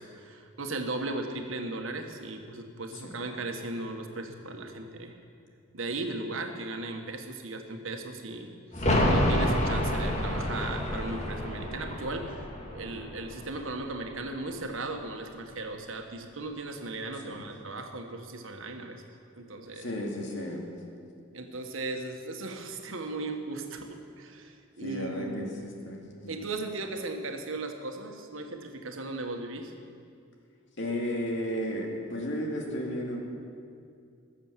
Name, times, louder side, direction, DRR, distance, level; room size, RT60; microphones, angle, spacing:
voice 1, 0.0-5.1 5.7-8.5 8.8-12.4 12.7-19.0 19.4-19.9 21.3-25.6 26.3-29.7, right 2 dB, 75° right, 4 dB, 1.4 m, -37 dB
sound 1, 8.7-14.3 14.6-14.7, left 1 dB, 35° left, 1.9 m, -29 dB
voice 2, 17.1-17.5 19.7-20.7 24.8-26.4 30.8-33.2, equal, 60° left, 0 dB, 2.4 m, -34 dB
20.0 x 7.3 x 7.4 m, 2.4 s
head